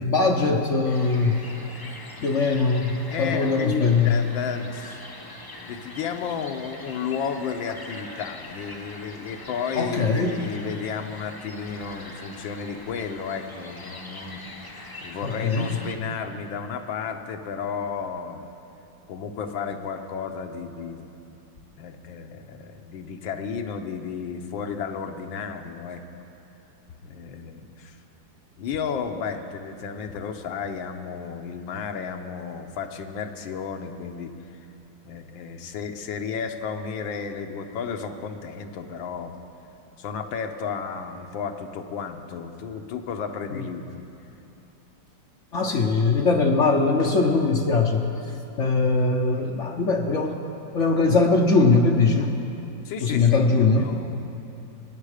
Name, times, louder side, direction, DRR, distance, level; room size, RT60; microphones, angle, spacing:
voice 1, 0.0-1.4 2.2-4.1 9.8-10.4 15.2-15.7 43.5-43.6 45.5-48.1 48.6-50.4 50.7-52.3 53.0-53.9, left 3 dB, 55° left, 2 dB, 0.8 m, -21 dB
sound 1, 0.8-15.9, left 2 dB, 30° left, 0.4 m, -42 dB
voice 2, 3.1-5.0 5.6-14.4 14.7-18.5 19.1-21.1 21.8-26.0 27.0-28.0 28.6-34.7 35.0-39.4 40.0-44.1 52.8-54.1, left 6 dB, 80° left, 5 dB, 1.6 m, -33 dB
21.0 x 9.5 x 5.0 m, 2.9 s
omnidirectional pair, 2.1 m